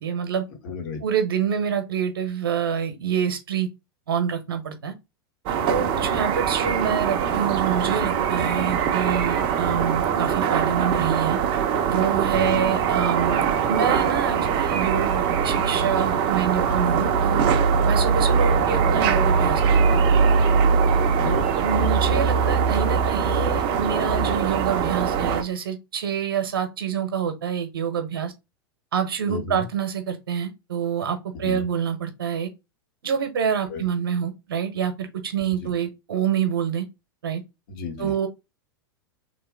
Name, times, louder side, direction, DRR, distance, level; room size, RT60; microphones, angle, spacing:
voice 1, 0.0-0.4 1.0-3.7 4.1-4.9 5.7-11.4 11.9-13.4 13.7-17.5 17.8-20.0 21.6-28.3 28.9-32.5 33.0-36.9 37.2-37.4 38.0-38.3, right 7 dB, 70° right, 1.2 m, -26 dB
voice 2, 0.6-1.0 5.7-6.2 12.3-12.6 21.0-21.4 29.3-29.7 31.3-31.6 33.7-33.8 35.6-35.7 37.7-38.1, left 4 dB, 55° left, 1.7 m, -34 dB
sound 1, 5.5-25.4, right 6 dB, 40° right, 0.8 m, -22 dB
3.6 x 3.2 x 4.6 m
figure-of-eight pair, 90°, 12 cm